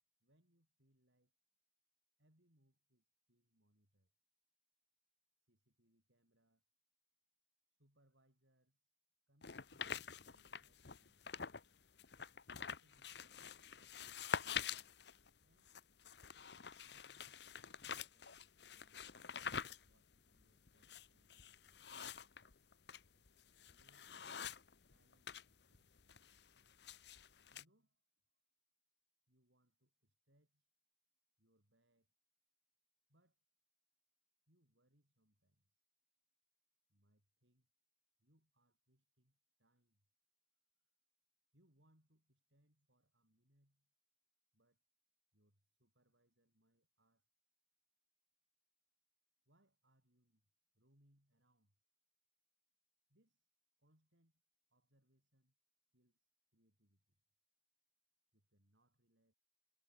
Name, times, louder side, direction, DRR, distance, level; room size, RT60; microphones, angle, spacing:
voice 1, 0.2-1.3 2.2-4.1 5.4-6.6 7.7-9.0 9.3-11.3 12.6-14.8 15.4-15.8 16.8-21.8 23.1-23.2 23.7-24.3 24.7-26.0 27.5-28.4 29.3-30.7 31.4-32.1 33.1-33.4 34.5-35.8 36.9-37.7 38.2-40.1 40.8-40.9 41.5-43.9 44.5-44.8 45.3-47.3 49.5-50.5 50.7-51.8 53.1-54.4 54.7-55.6 55.9-57.2 58.3-59.3, right 1 dB, 75° right, 7.0 m, -78 dB
sound 1, 9.4-11.7 12.0-25.4 25.7-27.6, left 7 dB, 60° left, 1.0 m, -47 dB
head